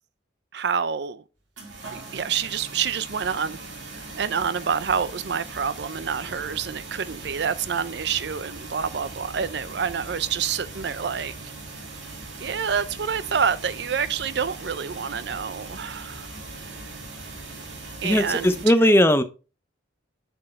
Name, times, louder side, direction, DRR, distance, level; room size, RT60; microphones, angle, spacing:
voice 1, 0.5-1.2 1.9-3.6 3.9-11.3 12.4-16.3 16.6-16.8 18.0-18.7, right 7 dB, 65° right, 0.5 m, -28 dB
sound 1, 1.6-18.7, right 3 dB, 85° right, 2.4 m, -39 dB
voice 2, 18.0-19.2, equal, 10° left, 0.5 m, -18 dB
8.6 x 4.6 x 3.2 m
head